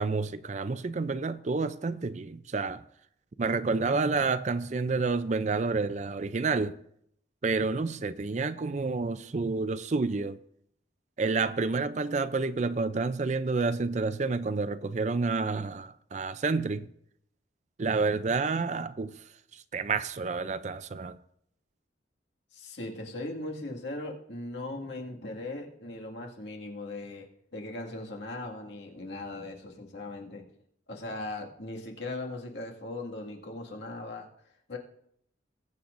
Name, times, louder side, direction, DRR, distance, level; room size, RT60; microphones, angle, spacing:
voice 1, 0.0-2.8 3.4-6.7 7.4-10.4 11.2-16.9 17.8-19.1 19.7-21.2, right 4 dB, 40° right, 0.4 m, -29 dB
voice 2, 22.5-30.4 30.9-34.3 34.7-34.8, left 2 dB, 75° left, 2.0 m, -39 dB
20.5 x 8.5 x 2.6 m
head